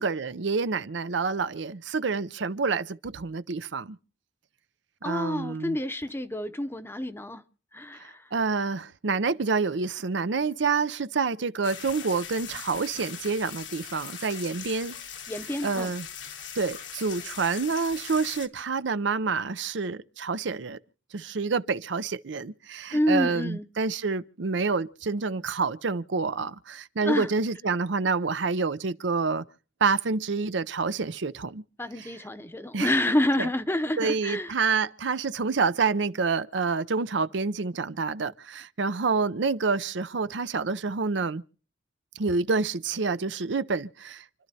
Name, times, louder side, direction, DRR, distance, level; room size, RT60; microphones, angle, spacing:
voice 1, 0.0-4.0 5.0-5.8 8.3-15.0 15.6-16.1 16.5-20.8 21.1-29.4 29.8-31.6 32.0-32.2 32.7-32.9 33.4-33.5 34.0-41.4 42.2-44.2, right 4 dB, 70° right, 0.6 m, -28 dB
voice 2, 5.0-7.4 7.7-8.1 15.3-15.9 22.9-23.7 27.0-27.3 31.8-34.5, left 1 dB, 15° left, 0.8 m, -28 dB
sound 1, 11.6-18.5, left 8 dB, 75° left, 1.4 m, -41 dB
29.0 x 12.0 x 2.8 m
head